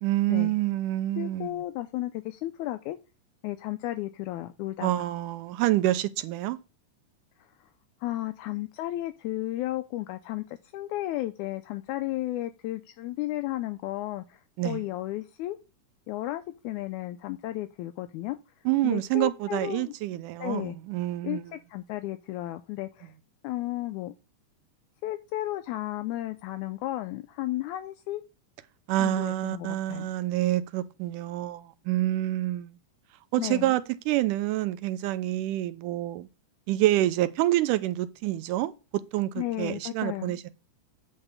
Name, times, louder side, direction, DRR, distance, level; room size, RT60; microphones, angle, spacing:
voice 1, 0.0-1.6 4.8-6.6 14.6-14.8 18.7-21.4 28.9-32.7 33.3-36.3 36.7-40.5, right 15 dB, 85° right, 2.2 m, -27 dB
voice 2, 1.2-3.0 3.4-4.9 7.6-7.7 8.0-15.6 16.1-18.4 18.8-19.9 20.4-20.8 21.2-23.1 23.4-24.1 25.0-28.2 29.0-30.1 33.4-33.8 39.4-40.4, left 15 dB, 80° left, 1.9 m, -33 dB
8.9 x 3.6 x 6.7 m
omnidirectional pair, 3.6 m